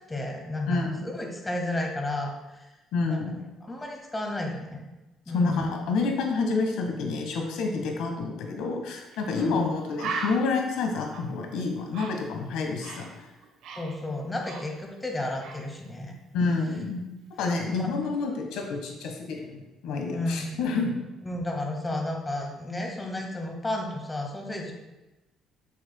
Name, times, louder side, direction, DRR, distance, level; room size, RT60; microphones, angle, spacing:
voice 1, 0.1-2.7 3.1-4.8 5.3-5.8 9.3-9.7 13.7-16.1 17.6-17.9 20.1-20.7 21.2-24.7, left 1 dB, 20° left, 1 dB, 1.6 m, -32 dB
voice 2, 0.7-1.1 2.9-3.3 5.3-13.0 16.3-17.0 17.4-20.9, left 4 dB, 80° left, 2 dB, 1.2 m, -28 dB
Bird, 9.1-9.3 9.6-9.7 10.0-13.2 13.4-15.1 15.4-15.7, right 4 dB, 75° right, 0.9 m, -38 dB
8.7 x 6.5 x 2.2 m, 1.1 s
supercardioid pair, 85°, 0 cm